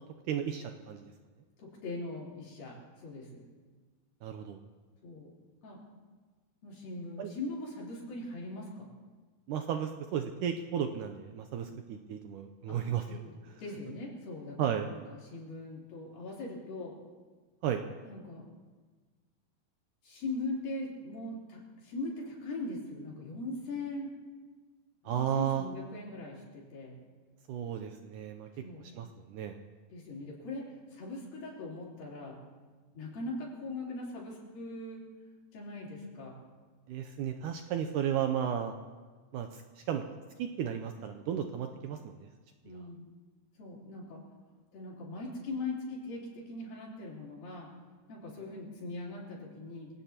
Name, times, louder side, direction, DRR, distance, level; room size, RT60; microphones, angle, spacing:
voice 1, 0.3-1.1 4.2-4.6 7.2-7.3 9.5-13.6 14.6-14.9 17.6-17.8 25.1-25.6 27.5-28.5 28.9-29.6 36.9-38.7 39.3-39.6 39.9-40.0 40.4-42.3 42.7-42.8, right 9 dB, 80° right, 6 dB, 1.9 m, -34 dB
voice 2, 1.6-3.4 5.0-5.3 5.6-5.8 6.6-8.9 12.7-12.8 13.1-13.3 13.6-16.9 18.0-18.5 20.0-24.1 25.0-27.0 28.6-28.9 29.9-32.4 32.9-35.0 35.5-36.3 42.6-43.0 43.6-44.2 44.7-47.7 48.1-49.9, left 2 dB, 70° left, -5 dB, 5.4 m, -40 dB
26.0 x 18.0 x 2.9 m, 1.4 s
omnidirectional pair, 4.2 m